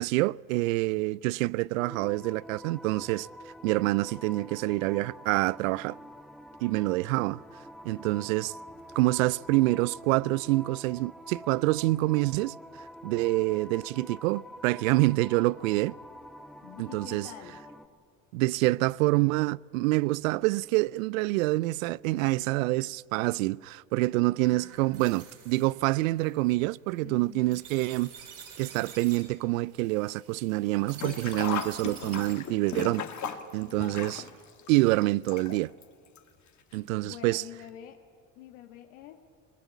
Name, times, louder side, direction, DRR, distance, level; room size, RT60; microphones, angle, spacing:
voice 1, 0.0-3.3 3.6-6.0 6.6-7.4 7.8-8.6 9.0-15.9 16.8-17.3 18.3-28.1 28.6-33.0 33.5-34.2 34.7-35.7 36.7-37.4, right 20 dB, 80° right, 0.5 m, -27 dB
sound 1, 1.8-17.9, equal, ahead, 1.5 m, -47 dB
voice 2, 16.6-17.6 24.5-24.8 27.0-27.6 33.7-34.1 37.0-38.0 38.3-39.2, left 10 dB, 75° left, 1.7 m, -47 dB
sound 2, 24.4-32.5, right 6 dB, 50° right, 5.8 m, -49 dB
Sink (filling or washing), 30.9-35.8 36.1-36.2 37.3-37.4 37.7-37.8, left 7 dB, 45° left, 2.1 m, -37 dB
23.5 x 20.5 x 8.3 m
hypercardioid pair, 70°, 40 cm